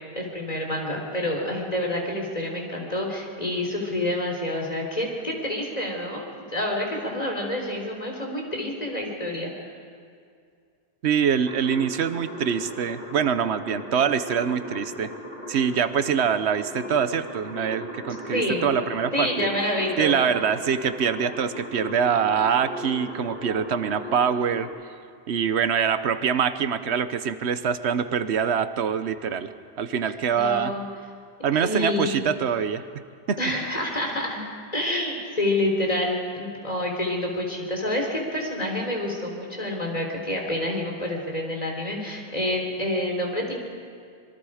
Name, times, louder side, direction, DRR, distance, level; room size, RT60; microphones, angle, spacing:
voice 1, 0.1-9.7 18.3-18.6 19.1-20.3 30.1-30.9 31.6-32.3 33.4-34.4 34.7-43.5, left 1 dB, 40° left, 0 dB, 3.8 m, -28 dB
voice 2, 11.0-15.1 15.5-19.5 20.0-24.7 25.3-29.5 29.8-30.7 31.4-32.9 33.3-33.4, right 7 dB, 90° right, 11 dB, 1.1 m, -24 dB
sound 1, 11.4-24.7, equal, 45° right, 3.3 m, -38 dB
25.5 x 22.5 x 5.0 m, 2.3 s
omnidirectional pair, 1.1 m